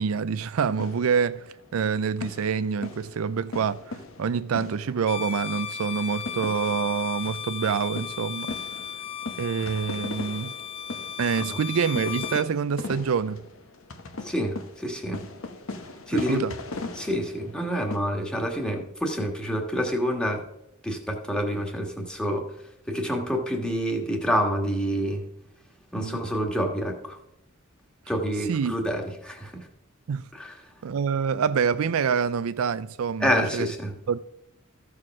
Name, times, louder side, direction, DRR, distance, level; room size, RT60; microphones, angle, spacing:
voice 1, 0.0-8.5 9.4-10.5 11.2-13.4 16.1-16.5 26.0-26.2 28.5-28.7 30.1-30.3 30.8-33.7 34.1-34.2, right 6 dB, 80° right, 0.4 m, -26 dB
sound 1, 0.8-1.9 2.2-5.3 5.7-5.8 6.2-18.0, left 2 dB, 70° left, 1.2 m, -39 dB
Bowed string instrument, 5.0-12.5, left 8 dB, 25° left, 0.3 m, -35 dB
voice 2, 14.2-15.2 16.1-16.4 16.9-20.4 20.8-22.5 22.9-25.2 25.9-27.2 28.1-29.7 30.3-30.6 33.2-33.9, equal, 5° left, 1.6 m, -28 dB
14.0 x 4.8 x 6.0 m
head